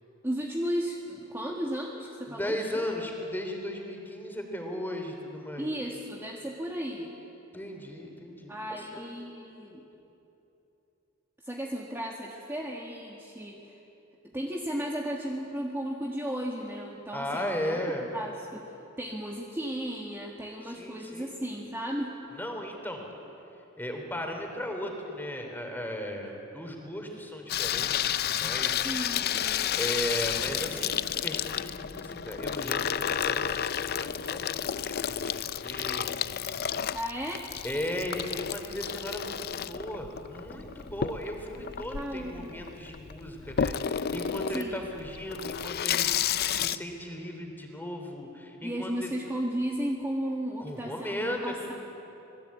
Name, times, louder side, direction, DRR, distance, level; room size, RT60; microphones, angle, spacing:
voice 1, 0.2-2.8 5.6-7.1 8.5-9.8 11.4-13.8 14.3-17.8 18.1-18.7 19.0-22.2 28.8-29.7 36.9-37.5 41.8-42.6 44.5-44.9 48.6-51.7, equal, 10° right, -1 dB, 1.6 m, -35 dB
voice 2, 2.3-5.7 7.5-9.1 17.1-18.1 20.6-21.4 22.3-23.1 23.8-28.8 29.8-36.1 37.6-49.1 50.6-51.7, equal, 10° left, 2 dB, 3.3 m, -36 dB
Water tap faucet / Sink (filling or washing), 27.5-46.8, left 9 dB, 50° left, 0.5 m, -31 dB
26.5 x 19.5 x 8.5 m, 3.0 s
head